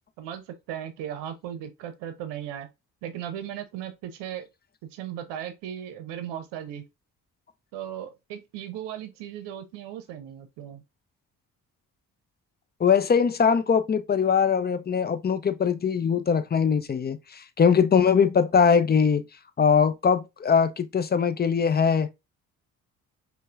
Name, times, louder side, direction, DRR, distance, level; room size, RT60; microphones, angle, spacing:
voice 1, 0.2-2.7 3.0-4.4 4.9-6.8 7.7-10.8, right 10 dB, 70° right, 0.7 m, -37 dB
voice 2, 12.8-19.2 19.6-22.1, left 6 dB, 25° left, 0.5 m, -21 dB
5.3 x 2.3 x 2.4 m
hypercardioid pair, 45°, 43 cm